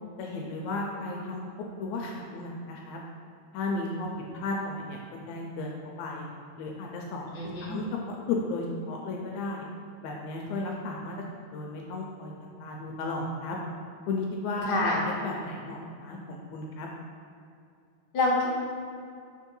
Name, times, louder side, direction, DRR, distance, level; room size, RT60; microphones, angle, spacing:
voice 1, 0.2-1.4 1.8-3.0 3.5-4.1 4.4-5.0 5.3-5.7 6.0-6.2 6.6-9.6 10.0-11.2 11.5-12.3 12.6-13.6 14.1-14.9 15.2-16.9, left 3 dB, 75° left, -1 dB, 1.9 m, -34 dB
voice 2, 7.3-7.8 14.7-15.0 18.1-18.5, left 2 dB, 50° left, -5 dB, 1.2 m, -26 dB
6.6 x 3.6 x 5.3 m, 2.4 s
omnidirectional pair, 3.6 m